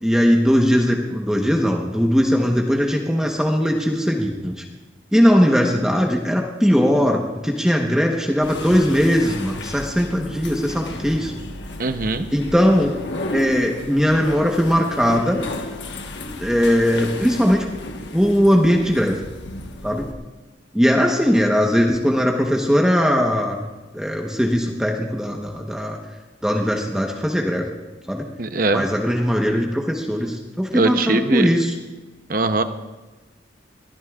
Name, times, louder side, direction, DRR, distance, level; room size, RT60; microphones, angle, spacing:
voice 1, 0.0-4.6 5.1-11.3 12.3-12.9 13.3-15.4 16.3-17.7 18.1-19.2 19.8-20.1 20.7-23.6 23.9-26.0 26.4-27.7 28.1-28.3 28.7-31.7, equal, 5° right, 0 dB, 1.1 m, -19 dB
sound 1, 8.4-20.1, left 2 dB, 75° left, 1.2 m, -33 dB
voice 2, 11.8-12.3 28.4-28.8 30.7-31.5 32.3-32.6, right 3 dB, 50° right, 9 dB, 0.8 m, -21 dB
21.5 x 15.0 x 2.4 m, 1.2 s
head